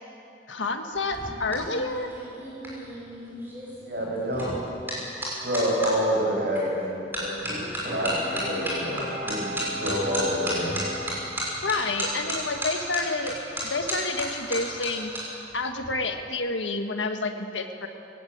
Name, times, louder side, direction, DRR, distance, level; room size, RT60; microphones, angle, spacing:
voice 1, 0.5-2.1 11.6-13.4 13.6-15.1 15.5-17.9, left 3 dB, 90° left, 6 dB, 1.7 m, -29 dB
sound 1, 0.9-5.9 6.6-6.8 7.1-15.2 15.5-15.9, right 1 dB, 10° right, 5.7 m, -33 dB
voice 2, 3.8-4.5 5.4-8.1 8.4-9.5 9.8-10.8, equal, 55° right, -2 dB, 5.8 m, -28 dB
Bowed string instrument, 7.4-11.9 12.4-12.5, left 1 dB, 90° right, 5.6 m, -37 dB
20.0 x 17.5 x 8.8 m, 2.8 s
head